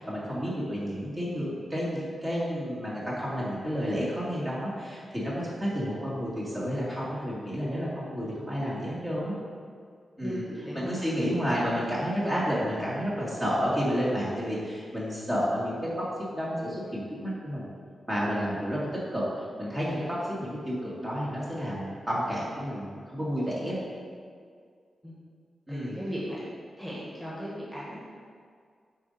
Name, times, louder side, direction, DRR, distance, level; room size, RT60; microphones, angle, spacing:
voice 1, 0.0-5.3 5.6-9.3 10.2-10.4 10.7-16.0 16.3-17.7 18.1-18.8 19.1-19.2 19.6-23.8 25.7-26.0, equal, 20° right, -7 dB, 1.9 m, -30 dB
voice 2, 10.2-10.9 25.0-25.1 25.7-26.4 26.8-28.0, equal, ahead, -7 dB, 1.8 m, -36 dB
8.3 x 3.8 x 5.3 m, 2.1 s
wide cardioid pair, 125°, 0 cm